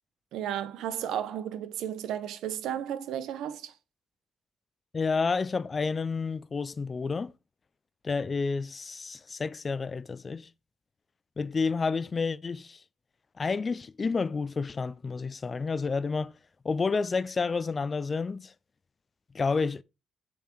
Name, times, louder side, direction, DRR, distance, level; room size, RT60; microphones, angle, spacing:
voice 1, 0.3-3.7, right 10 dB, 85° right, 0.7 m, -33 dB
voice 2, 4.9-7.3 8.0-10.5 11.4-12.8 13.4-16.3 16.6-18.5 19.3-19.8, left 4 dB, 35° left, 0.3 m, -30 dB
6.8 x 6.2 x 3.1 m
cardioid pair, 90°, 0 cm